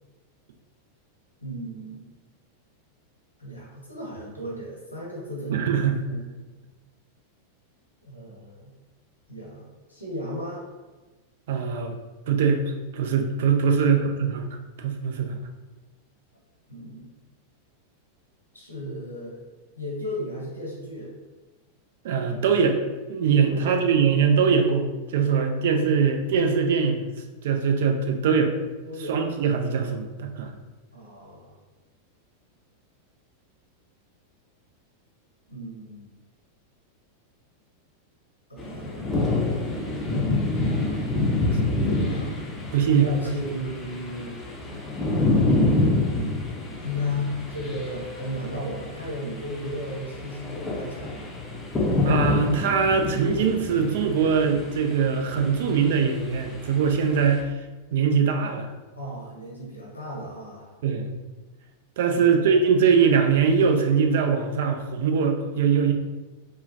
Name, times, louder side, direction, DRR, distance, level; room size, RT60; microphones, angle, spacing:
voice 1, 1.4-2.1 3.4-5.7 6.1-6.3 8.0-8.7 9.3-10.7 13.7-14.1 16.7-17.1 18.5-19.4 19.8-21.2 23.5-23.8 28.8-29.2 30.9-31.6 35.5-36.1 38.5-39.6 40.5-42.4 42.6-44.4 46.8-51.4 58.9-60.7 62.1-62.4, left 1 dB, 90° left, -4 dB, 0.9 m, -35 dB
voice 2, 5.5-6.0 11.5-11.9 12.3-14.4 14.8-15.4 22.0-22.8 23.1-27.1 27.4-28.5 29.1-30.5 42.7-43.1 52.0-57.5 57.9-58.7 60.8-61.1 62.0-65.9, right 6 dB, 55° right, 4 dB, 0.4 m, -22 dB
sound 1, 38.6-57.4, left 2 dB, 20° left, 0.5 m, -27 dB
3.6 x 2.1 x 2.7 m, 1.2 s
figure-of-eight pair, 90°, 0 cm